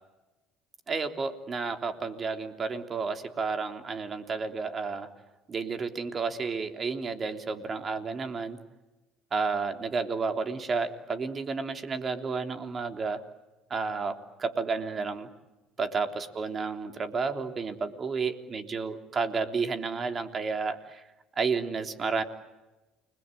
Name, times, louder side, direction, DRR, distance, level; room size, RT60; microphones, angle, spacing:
voice 1, 0.9-5.1 5.5-8.6 9.3-13.2 13.7-15.3 15.8-21.0 21.4-22.2, right 4 dB, 40° right, 6 dB, 3.4 m, -31 dB
29.5 x 21.5 x 9.2 m, 1.1 s
supercardioid pair, 80°, 0 cm